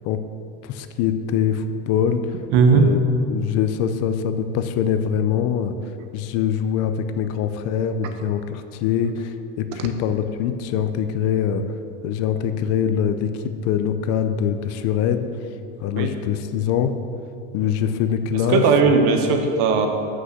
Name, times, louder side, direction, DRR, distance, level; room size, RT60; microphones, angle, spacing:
voice 1, 0.6-2.4 2.7-11.6 12.0-15.3 15.8-16.9 17.5-19.0, left 8 dB, 55° left, 10 dB, 0.6 m, -23 dB
voice 2, 2.5-2.8 15.9-16.1 18.5-19.9, right 5 dB, 65° right, 5 dB, 1.1 m, -17 dB
7.6 x 6.2 x 6.5 m, 2.6 s
cardioid pair, 150°, 30 cm